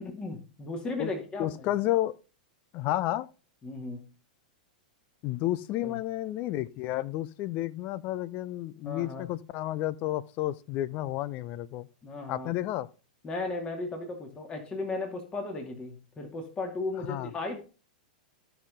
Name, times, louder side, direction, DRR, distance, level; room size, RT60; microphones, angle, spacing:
voice 1, 0.0-1.7 3.6-4.0 5.8-6.0 8.8-9.3 12.0-12.5 13.2-17.7, left 3 dB, 20° left, 2.4 m, -36 dB
voice 2, 1.4-2.1 2.7-3.3 5.2-11.9 12.3-12.9 17.1-17.3, left 14 dB, 40° left, 0.6 m, -31 dB
14.0 x 5.8 x 3.7 m
figure-of-eight pair, 95°, 4 cm